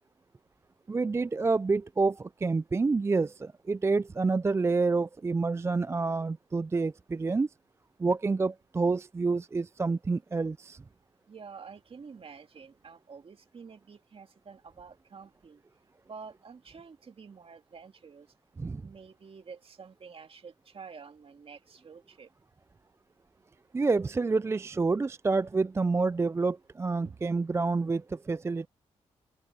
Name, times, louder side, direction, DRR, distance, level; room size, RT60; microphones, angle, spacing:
voice 1, 0.9-7.5 8.0-10.8 18.6-18.8 23.7-28.7, right 4 dB, 20° right, 0.3 m, -28 dB
voice 2, 11.3-15.6 16.1-18.3 18.8-22.3 27.0-27.3, right 5 dB, 50° right, 2.2 m, -49 dB
open air
cardioid pair, 60°, 12 cm